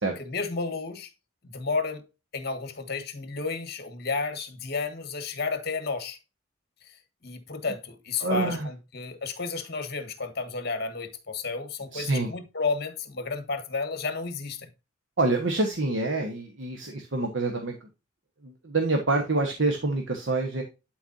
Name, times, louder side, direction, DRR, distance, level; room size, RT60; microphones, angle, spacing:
voice 1, 0.2-1.1 1.4-2.1 2.3-6.2 6.8-7.0 7.2-14.7, left 4 dB, 55° left, 1.5 m, -32 dB
voice 2, 8.2-8.7 11.9-12.3 15.2-17.7 18.4-20.6, right 2 dB, 70° right, 1.3 m, -26 dB
11.5 x 4.6 x 2.7 m
head